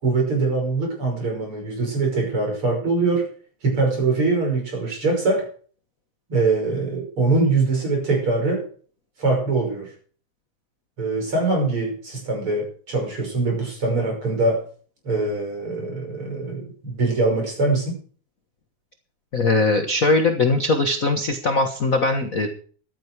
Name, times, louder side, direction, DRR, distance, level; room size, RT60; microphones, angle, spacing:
voice 1, 0.0-3.3 3.6-5.5 6.3-8.7 9.2-9.9 11.0-14.7 15.0-18.0, right 3 dB, 45° right, 2 dB, 6.5 m, -23 dB
voice 2, 19.3-22.5, left 2 dB, 40° left, 5 dB, 1.2 m, -20 dB
15.0 x 12.0 x 4.8 m, 0.42 s
omnidirectional pair, 3.4 m